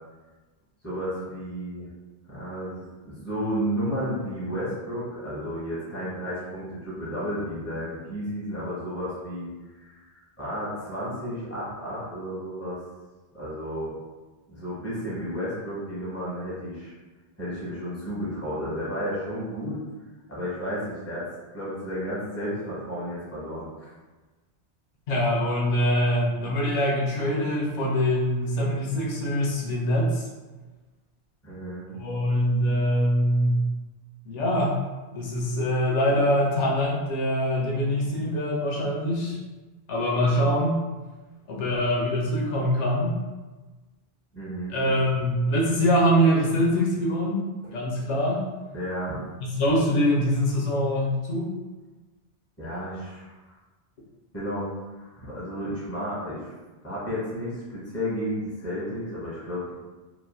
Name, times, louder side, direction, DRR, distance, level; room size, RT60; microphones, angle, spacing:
voice 1, 0.8-1.9 2.3-9.5 9.8-10.1 10.4-12.8 13.3-13.9 14.5-16.9 17.4-19.8 20.3-21.2 21.5-23.9 31.4-31.9 44.3-44.8 48.7-49.2 52.6-53.5 54.3-56.5 56.8-59.7, equal, 15° left, -9 dB, 1.1 m, -32 dB
voice 2, 25.1-30.3 31.9-33.6 34.3-34.8 35.1-39.4 39.9-40.8 41.5-43.2 44.7-48.4 49.6-51.5, equal, 80° left, -3 dB, 0.9 m, -24 dB
3.1 x 2.4 x 2.2 m, 1.2 s
omnidirectional pair, 1.2 m